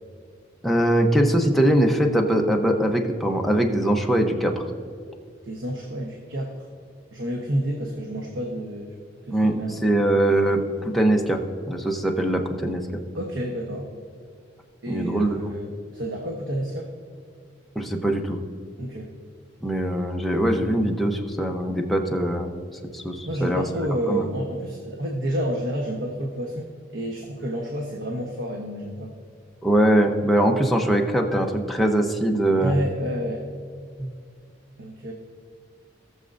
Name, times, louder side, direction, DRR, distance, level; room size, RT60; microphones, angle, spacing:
voice 1, 0.6-4.5 9.3-11.4 11.7-13.0 14.9-15.4 17.7-18.4 19.6-22.5 22.9-24.3 29.6-32.8 34.0-34.1, right 1 dB, ahead, 1 dB, 0.8 m, -22 dB
voice 2, 5.4-6.6 7.1-8.9 9.3-10.1 13.1-13.9 14.8-16.9 18.8-19.1 23.3-26.7 26.9-29.1 32.6-33.5 34.8-35.1, equal, 85° right, 1 dB, 1.1 m, -29 dB
18.0 x 6.8 x 2.6 m, 2.2 s
head